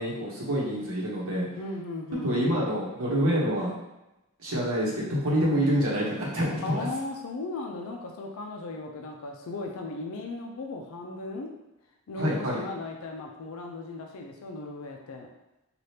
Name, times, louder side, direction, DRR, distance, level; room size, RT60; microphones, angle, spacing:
voice 1, 0.0-1.5 2.2-3.7 4.4-6.9 12.2-12.6, equal, 70° right, -5 dB, 1.0 m, -27 dB
voice 2, 1.5-2.4 6.6-11.5 12.1-15.3, left 3 dB, 70° left, 1 dB, 0.4 m, -37 dB
2.8 x 2.4 x 3.3 m, 0.96 s
head